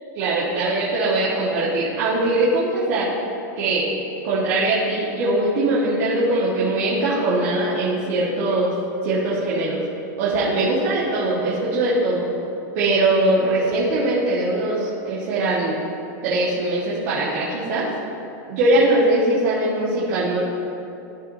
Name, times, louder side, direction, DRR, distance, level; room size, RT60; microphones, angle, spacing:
voice 1, 0.2-3.1 3.6-3.8 4.2-8.7 9.0-9.8 10.2-12.3 12.7-15.8 16.2-17.9 18.5-20.4, right 2 dB, 45° right, -8 dB, 1.6 m, -21 dB
14.0 x 4.8 x 2.8 m, 2.8 s
supercardioid pair, 165°, 10 cm